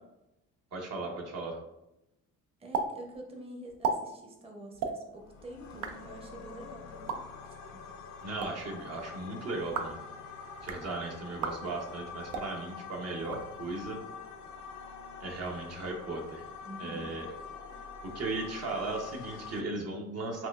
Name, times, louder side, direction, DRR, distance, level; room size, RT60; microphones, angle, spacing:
voice 1, 0.7-1.6 8.2-10.0 10.6-14.0 15.2-16.4 16.8-17.4 18.0-20.5, right 3 dB, 55° right, 1 dB, 0.7 m, -37 dB
voice 2, 2.6-7.8 16.6-17.1 17.7-17.9, right 1 dB, 20° right, 1 dB, 0.6 m, -47 dB
sound 1, 2.7-2.9 3.1-3.2 3.7-4.0 4.7-4.9 5.6-5.9 6.9-7.2 8.2-8.5 9.6-10.0 10.5-10.8 11.3-11.6 12.2-12.5 13.2-13.9, right 5 dB, 90° right, 0.5 m, -35 dB
sound 2, 5.2-19.6, left 5 dB, 70° left, 0.5 m, -45 dB
4.2 x 2.3 x 2.3 m, 0.89 s
cardioid pair, 90°, 30 cm